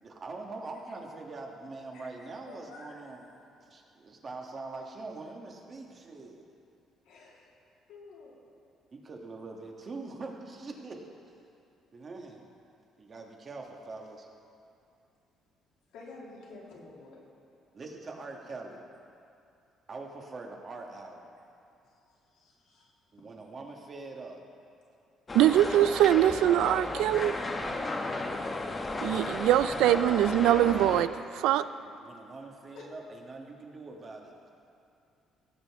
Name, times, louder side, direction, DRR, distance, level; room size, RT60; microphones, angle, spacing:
voice 1, 0.0-6.4 8.9-11.0 11.9-12.5 13.0-14.3 17.7-18.8 19.9-21.4 23.1-24.4 27.5-27.8 31.8-34.3, right 3 dB, 35° right, 1.5 m, -43 dB
voice 2, 2.5-3.0 7.0-7.5 7.9-8.5 15.9-17.3 22.3-22.9 32.7-32.9, left 3 dB, 85° left, 2.3 m, -49 dB
sound 1, 25.3-31.0, left 2 dB, 25° left, 0.9 m, -34 dB
voice 3, 25.3-27.3 29.0-31.6, right 12 dB, 85° right, 0.3 m, -23 dB
17.5 x 7.8 x 3.6 m
cardioid pair, 115°, 0 cm